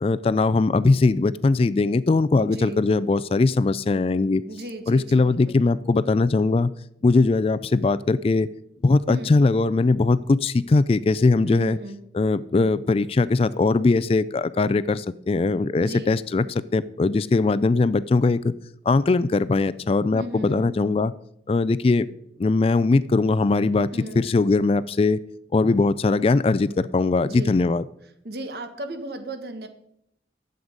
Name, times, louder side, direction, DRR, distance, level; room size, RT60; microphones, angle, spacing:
voice 1, 0.0-4.4 4.9-6.7 7.0-8.5 8.8-11.8 12.1-18.5 18.9-21.1 21.5-22.1 22.4-23.9 24.2-25.2 25.5-27.8, left 3 dB, 35° left, 17 dB, 0.3 m, -20 dB
voice 2, 2.4-2.9 4.5-5.6 9.1-9.3 11.4-12.0 15.8-16.2 20.1-20.7 23.9-24.3 27.2-27.6 28.2-29.7, right 1 dB, 60° right, 7 dB, 1.4 m, -35 dB
11.5 x 7.9 x 5.2 m, 0.75 s
head